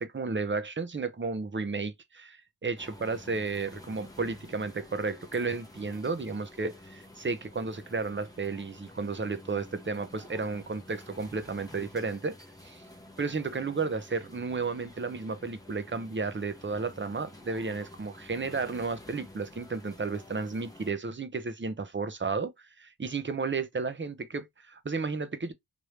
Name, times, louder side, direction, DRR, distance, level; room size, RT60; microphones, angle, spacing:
voice 1, 0.0-12.3 12.6-12.7 13.2-25.5, right 4 dB, 25° right, 0.6 m, -33 dB
sound 1, 2.8-20.9, left 1 dB, 10° left, 0.9 m, -51 dB
3.2 x 2.6 x 3.1 m
wide cardioid pair, 65°, 48 cm